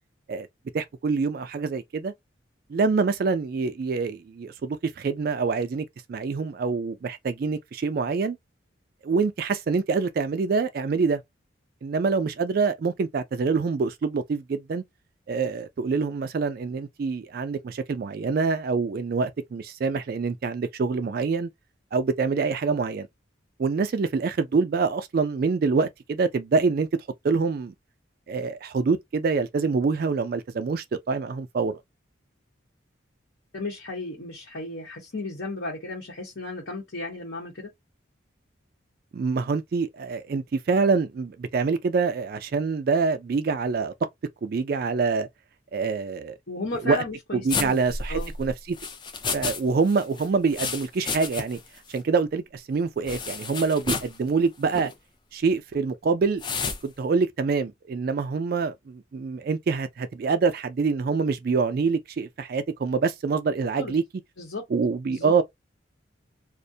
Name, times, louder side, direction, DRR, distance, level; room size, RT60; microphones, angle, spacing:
voice 1, 0.7-2.1 2.7-8.4 9.0-11.2 11.8-14.8 15.3-21.5 21.9-23.1 23.6-26.9 27.2-27.7 28.3-31.8 39.1-43.9 44.4-45.3 45.7-46.4 46.8-47.0 47.3-48.8 49.3-51.6 51.9-54.9 55.3-56.4 56.8-64.0 64.7-65.4, right 4 dB, 50° right, 0.3 m, -25 dB
voice 2, 33.5-37.7 46.5-47.8 48.1-48.3 63.8-64.0 64.4-64.6 65.1-65.3, left 2 dB, 65° left, 0.9 m, -34 dB
sound 1, 47.5-49.6 49.9-51.7 51.9-52.0 53.1-54.2 54.7-54.9 56.4-56.8, left 4 dB, 25° left, 0.4 m, -31 dB
2.4 x 2.1 x 2.6 m
head